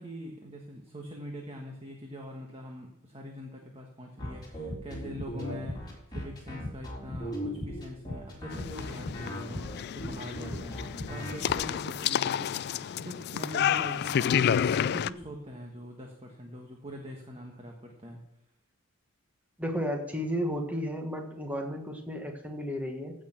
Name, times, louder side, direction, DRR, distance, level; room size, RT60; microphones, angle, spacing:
voice 1, 0.0-18.2, equal, 25° right, 1 dB, 1.4 m, -43 dB
sound 1, 4.2-11.7, equal, 20° left, 3.8 m, -37 dB
sound 2, 8.5-15.1, left 8 dB, 50° left, 0.3 m, -30 dB
voice 2, 19.6-23.1, equal, 5° right, 3 dB, 1.5 m, -33 dB
15.5 x 6.5 x 6.0 m, 0.81 s
head